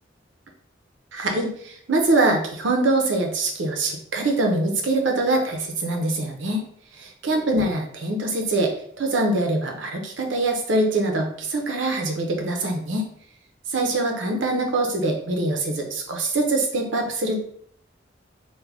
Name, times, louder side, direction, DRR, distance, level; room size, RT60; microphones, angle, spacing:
voice 1, 1.1-6.6 7.0-8.7 9.0-13.0 13.7-17.4, right 2 dB, 75° right, 2 dB, 0.7 m, -23 dB
3.5 x 2.2 x 3.3 m, 0.63 s
head